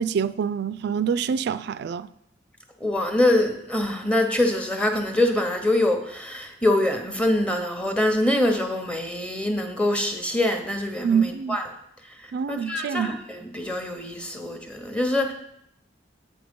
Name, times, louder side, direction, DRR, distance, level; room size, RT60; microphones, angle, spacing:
voice 1, 0.0-2.1 11.0-11.6 12.3-13.1, right 7 dB, 60° right, 0.3 m, -25 dB
voice 2, 2.8-11.7 12.2-15.3, left 1 dB, 5° left, 0.9 m, -24 dB
8.2 x 5.1 x 5.2 m
head